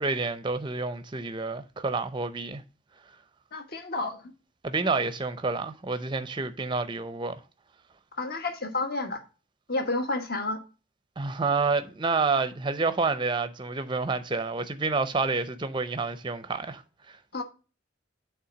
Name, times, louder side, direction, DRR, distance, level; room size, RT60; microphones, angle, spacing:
voice 1, 0.0-2.6 4.6-7.4 11.2-17.2, right 4 dB, 25° right, 0.6 m, -29 dB
voice 2, 3.5-4.2 8.1-9.2 9.7-10.6 17.3-17.4, left 2 dB, 50° left, 1.3 m, -30 dB
8.6 x 3.5 x 6.1 m
head